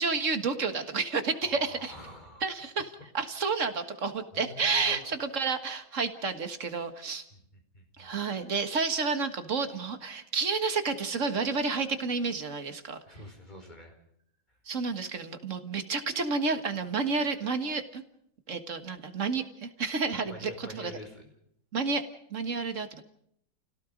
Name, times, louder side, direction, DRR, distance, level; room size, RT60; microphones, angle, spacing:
voice 1, 0.0-1.9 2.4-7.2 8.0-13.0 14.7-18.0 18.5-20.9 21.7-22.0 22.3-23.0, right 4 dB, 40° right, 8 dB, 1.8 m, -30 dB
voice 2, 1.4-2.5 4.3-5.1 6.9-8.1 9.7-9.8 13.1-14.0 20.3-21.3, left 1 dB, 20° left, 4 dB, 4.9 m, -46 dB
29.0 x 17.5 x 5.1 m, 0.70 s
omnidirectional pair, 2.1 m